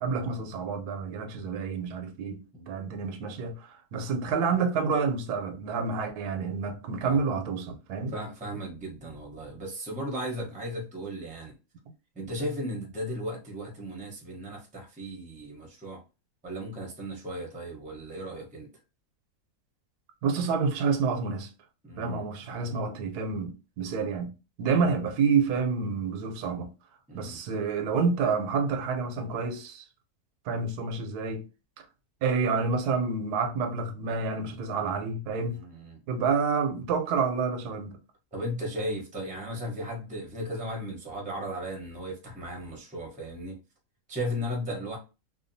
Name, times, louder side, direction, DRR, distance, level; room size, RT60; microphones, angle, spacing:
voice 1, 0.0-2.4 2.7-8.1 20.2-21.5 22.0-24.3 24.6-26.7 27.1-29.8 30.5-31.4 32.2-35.6 36.1-38.0, right 5 dB, 85° right, 1.1 m, -28 dB
voice 2, 8.1-11.5 12.1-16.0 16.4-18.7 21.8-22.3 24.7-25.0 27.1-27.4 35.5-36.0 38.3-43.6 44.1-45.0, equal, 10° right, 0.5 m, -36 dB
2.7 x 2.2 x 2.6 m
omnidirectional pair, 1.6 m